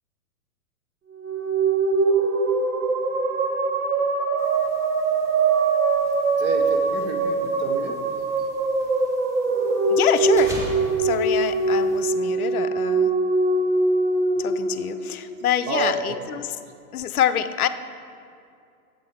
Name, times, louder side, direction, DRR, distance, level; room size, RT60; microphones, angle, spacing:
sound 1, 1.1-15.6, right 3 dB, 65° right, 1.5 m, -22 dB
sound 2, 4.4-12.1, equal, 5° right, 1.6 m, -42 dB
voice 1, 6.4-8.0 15.7-16.1, right 4 dB, 25° right, 5 dB, 0.8 m, -29 dB
voice 2, 9.9-10.5 11.0-13.1 14.4-16.6 16.9-17.7, left 10 dB, 70° left, 12 dB, 0.7 m, -25 dB
10.5 x 7.8 x 4.5 m, 2.4 s
hypercardioid pair, 120°, 45 cm